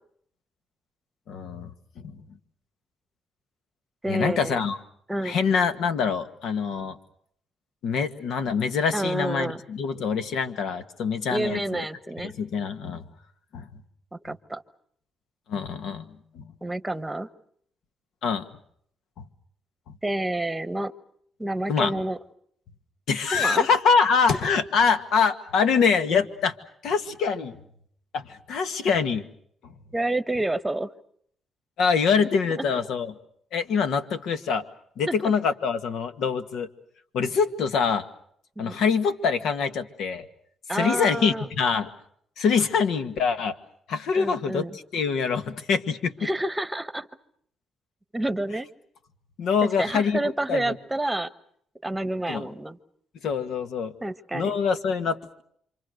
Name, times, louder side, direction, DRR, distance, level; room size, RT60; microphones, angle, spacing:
voice 1, 1.3-2.2 4.1-4.8 5.2-7.0 7.8-11.8 12.2-13.0 13.5-13.7 15.5-16.5 18.2-18.5 19.2-19.3 21.7-22.0 23.1-26.6 26.8-27.6 28.1-29.3 31.8-33.1 33.5-34.6 35.0-36.7 37.1-38.1 38.6-40.3 40.7-41.9 42.4-43.5 43.9-46.3 49.4-50.2 50.5-50.8 52.3-52.5 53.2-53.9 54.3-55.4, left 5 dB, 75° left, 10 dB, 1.8 m, -25 dB
voice 2, 4.0-4.6 5.1-5.4 8.9-9.6 11.3-12.3 14.1-14.6 16.6-17.3 20.0-20.9 21.4-22.2 23.3-23.7 29.9-30.9 32.7-32.8 35.1-35.3 38.6-38.8 40.7-41.5 44.1-44.7 46.2-47.1 48.1-48.7 49.8-51.3 51.8-52.8 54.0-54.5, right 1 dB, 10° right, 13 dB, 1.2 m, -29 dB
28.0 x 25.5 x 6.6 m, 0.67 s
cardioid pair, 90°, 0 cm